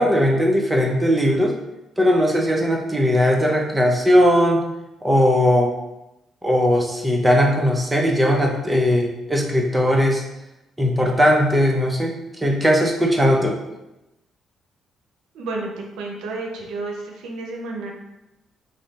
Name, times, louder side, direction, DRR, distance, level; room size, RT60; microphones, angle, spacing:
voice 1, 0.0-1.6 2.0-4.6 5.0-5.7 6.4-10.2 10.8-13.6, equal, 15° right, 0 dB, 0.7 m, -18 dB
voice 2, 15.3-17.9, right 3 dB, 90° right, 0 dB, 0.6 m, -31 dB
3.2 x 2.7 x 4.0 m, 0.94 s
cardioid pair, 90°, 0 cm